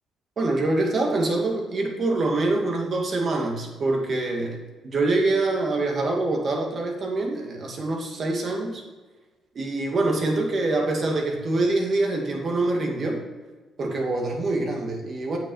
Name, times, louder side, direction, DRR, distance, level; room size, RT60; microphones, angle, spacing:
voice 1, 0.4-4.6 4.8-8.8 9.5-13.2 13.8-15.4, right 2 dB, 50° right, 1 dB, 2.4 m, -25 dB
8.5 x 6.2 x 5.6 m, 1.3 s
cardioid pair, 90°, 0 cm